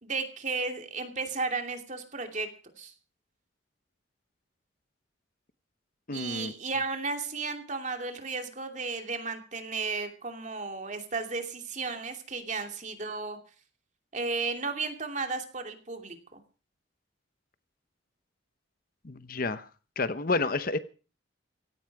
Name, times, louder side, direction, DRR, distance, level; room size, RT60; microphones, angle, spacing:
voice 1, 0.0-2.5 2.7-2.9 6.1-13.4 14.1-16.4, right 4 dB, 40° right, 2.7 m, -34 dB
voice 2, 6.1-6.5 19.0-19.7 20.0-20.8, left 3 dB, 45° left, 0.9 m, -30 dB
17.0 x 14.5 x 4.8 m
head